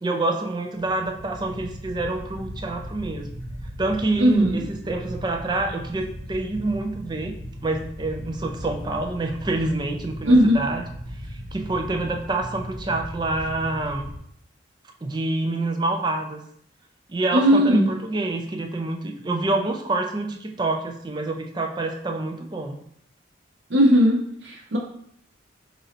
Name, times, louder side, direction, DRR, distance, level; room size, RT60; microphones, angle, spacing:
voice 1, 0.0-3.3 3.8-7.3 7.6-10.8 11.3-14.1 15.0-16.4 17.1-22.8, right 2 dB, 20° right, 4 dB, 0.4 m, -27 dB
sound 1, 0.8-14.2, equal, 25° left, 1.2 m, -37 dB
voice 2, 4.2-4.6 10.3-10.6 17.3-17.9 23.7-24.8, equal, 65° right, -2 dB, 0.9 m, -17 dB
3.8 x 2.8 x 4.2 m, 0.68 s
head